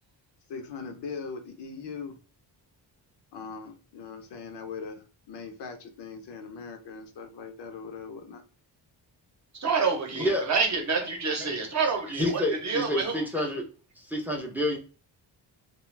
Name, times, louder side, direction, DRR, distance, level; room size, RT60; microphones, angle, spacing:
voice 1, 0.5-2.2 3.3-8.4, left 5 dB, 70° left, 6 dB, 0.6 m, -40 dB
voice 2, 9.5-13.2, right 4 dB, 40° right, 2 dB, 0.7 m, -28 dB
voice 3, 10.1-10.5 11.4-11.5 12.2-13.6 14.0-14.8, left 1 dB, 5° right, 1 dB, 0.5 m, -28 dB
2.4 x 2.2 x 3.1 m, 0.35 s
wide cardioid pair, 150°, 43 cm